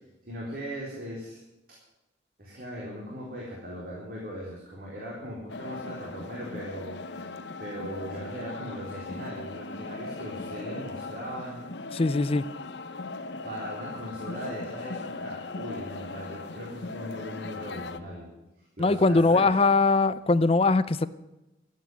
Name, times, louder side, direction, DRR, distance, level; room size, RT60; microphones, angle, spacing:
voice 1, 0.2-1.4 1.7-1.8 2.4-7.3 7.6-11.6 13.4-18.3 18.8-19.5, equal, 55° right, -4 dB, 3.9 m, -39 dB
sound 1, 5.5-18.0, left 3 dB, 70° left, 0.9 m, -39 dB
voice 2, 11.9-12.5 18.8-21.1, left 3 dB, 30° left, 16 dB, 0.5 m, -21 dB
14.5 x 8.5 x 9.4 m, 0.97 s
head